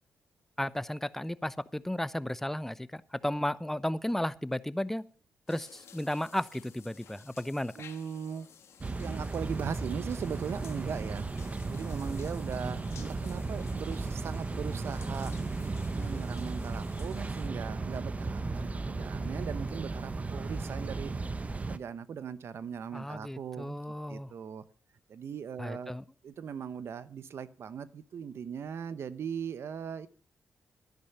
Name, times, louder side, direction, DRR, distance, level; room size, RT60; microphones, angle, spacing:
voice 1, 0.6-5.0 5.5-7.7 22.9-24.3 25.6-26.0, left 1 dB, 5° left, 17 dB, 0.8 m, -34 dB
sound 1, 5.5-17.5, left 7 dB, 75° left, 1.6 m, -55 dB
voice 2, 7.8-8.5 9.0-11.2 11.7-15.3 15.9-21.1 21.7-23.8 24.1-24.6 25.1-26.0 26.2-30.1, right 7 dB, 65° right, 15 dB, 0.9 m, -39 dB
sound 2, 8.8-21.8, right 3 dB, 30° right, 1.0 m, -35 dB
12.0 x 10.5 x 6.8 m, 0.43 s
cardioid pair, 70°, 5 cm